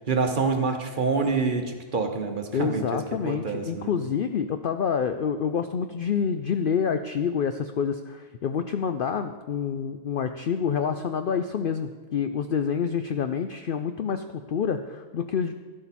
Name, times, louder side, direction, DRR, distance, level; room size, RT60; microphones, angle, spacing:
voice 1, 0.1-3.9, right 4 dB, 40° right, 5 dB, 1.0 m, -27 dB
voice 2, 2.5-15.5, left 7 dB, 65° left, 8 dB, 0.5 m, -27 dB
12.0 x 11.5 x 4.2 m, 1.4 s
omnidirectional pair, 1.4 m